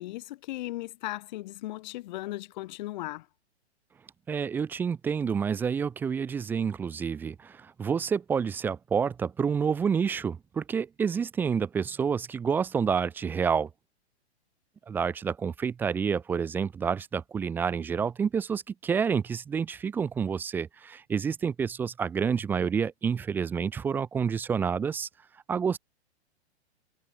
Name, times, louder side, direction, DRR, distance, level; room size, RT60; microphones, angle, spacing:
voice 1, 0.0-3.2, left 17 dB, 40° left, 6.9 m, -37 dB
voice 2, 4.3-13.7 14.9-25.1 25.5-25.8, right 6 dB, 5° right, 0.5 m, -28 dB
figure-of-eight pair, 115°, 34 cm